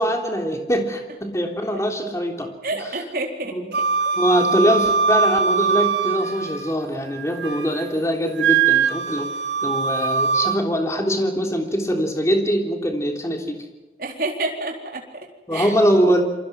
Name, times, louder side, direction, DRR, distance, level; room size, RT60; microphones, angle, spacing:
voice 1, 0.0-2.5 3.5-3.6 4.2-9.3 9.6-13.6 15.5-16.2, equal, 15° left, 3 dB, 3.4 m, -22 dB
voice 2, 2.6-3.8 14.0-15.7, right 2 dB, 55° right, 2 dB, 4.1 m, -29 dB
Wind instrument woodwind instrument, 3.7-6.7 7.1-7.9 8.4-10.6, right 6 dB, 90° right, 1.7 m, -22 dB
28.0 x 23.5 x 6.1 m, 1.2 s
head